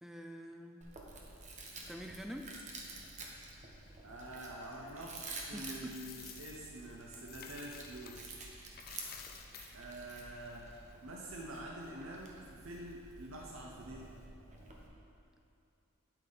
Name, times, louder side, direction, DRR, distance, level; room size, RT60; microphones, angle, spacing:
voice 1, 0.0-0.9 1.8-2.6 5.5-6.0, equal, ahead, 3 dB, 0.4 m, -46 dB
Chewing mastication, 0.8-14.9, right 3 dB, 35° right, 1.1 m, -50 dB
voice 2, 4.0-5.1 5.5-8.2 9.7-10.7 11.0-14.1, right 1 dB, 65° right, -2 dB, 0.9 m, -46 dB
Coin (dropping), 5.5-8.3 8.7-10.9, left 8 dB, 45° left, 0.6 m, -53 dB
9.5 x 8.8 x 4.0 m, 2.6 s
head